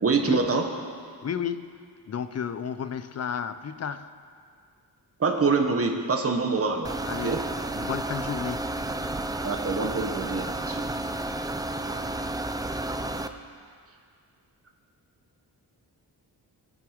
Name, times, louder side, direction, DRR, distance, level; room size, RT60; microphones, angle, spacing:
voice 1, 0.0-0.7 5.2-6.9 7.2-7.4 9.4-10.8, right 4 dB, 35° right, 3 dB, 1.2 m, -25 dB
voice 2, 1.2-1.8 2.1-4.1 7.1-8.7, left 7 dB, 40° left, 12 dB, 0.6 m, -32 dB
sound 1, 6.8-13.3, right 2 dB, 10° right, 0.4 m, -31 dB
20.5 x 7.0 x 5.1 m, 2.1 s
wide cardioid pair, 135°, 40 cm